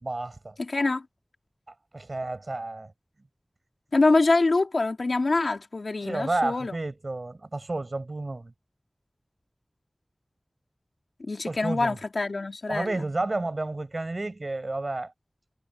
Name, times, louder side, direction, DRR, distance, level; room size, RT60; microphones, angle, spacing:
voice 1, 0.0-0.5 1.9-2.9 6.0-8.5 11.5-12.0 12.7-15.1, right 2 dB, 55° right, 6.5 m, -31 dB
voice 2, 0.6-1.0 3.9-6.7 11.3-13.0, left 3 dB, 90° left, 2.2 m, -25 dB
wide cardioid pair, 60°, 0 cm